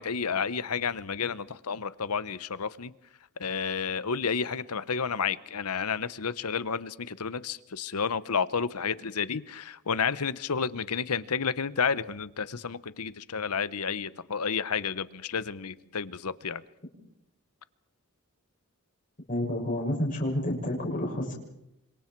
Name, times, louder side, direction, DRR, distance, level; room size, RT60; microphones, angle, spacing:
voice 1, 0.0-2.9 3.4-16.6, left 6 dB, 85° left, 17 dB, 0.9 m, -31 dB
voice 2, 19.3-21.3, left 1 dB, 40° left, 0 dB, 6.8 m, -29 dB
28.5 x 25.5 x 4.6 m, 0.84 s
head